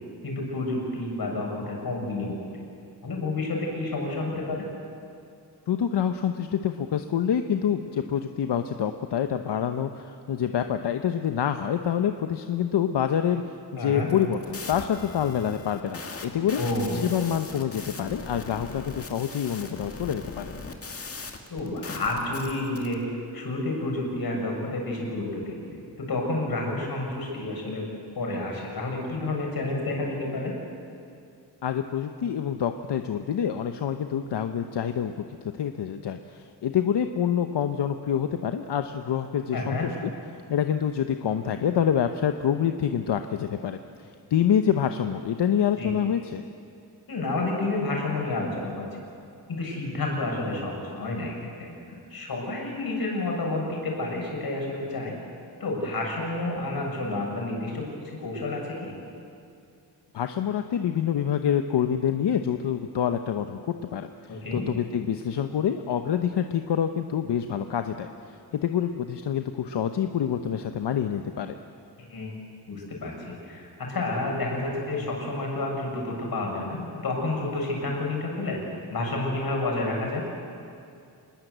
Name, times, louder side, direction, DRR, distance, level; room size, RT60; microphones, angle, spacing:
voice 1, 0.2-2.6 3.0-4.6 13.8-14.1 16.6-17.2 21.5-23.0 23.3-27.9 28.1-30.5 39.5-39.9 45.8-45.9 47.1-49.0 49.5-55.1 55.6-58.9 64.3-64.6 72.0-72.4 72.7-78.6 78.9-80.2, left 2 dB, 60° left, 0 dB, 6.5 m, -30 dB
voice 2, 5.7-16.6 17.0-20.6 31.6-39.9 40.5-46.4 60.1-71.6, left 9 dB, 85° left, 7 dB, 1.0 m, -27 dB
sound 1, 14.0-22.9, left 4 dB, 35° left, 2.0 m, -40 dB
27.0 x 21.0 x 8.1 m, 2.5 s
wide cardioid pair, 155°, 40 cm